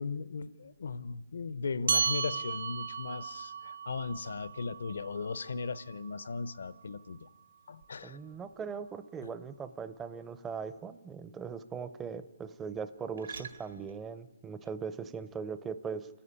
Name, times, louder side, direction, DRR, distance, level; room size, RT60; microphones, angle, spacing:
voice 1, 0.0-7.3 7.7-8.2, left 4 dB, 75° left, 0.7 m, -37 dB
sound 1, 0.6-15.7, right 5 dB, 85° right, 2.0 m, -57 dB
sound 2, 1.9-6.7, right 6 dB, 70° right, 0.6 m, -35 dB
voice 2, 8.0-16.1, right 6 dB, 10° right, 0.5 m, -40 dB
29.0 x 10.0 x 9.8 m
hypercardioid pair, 165°, 0 cm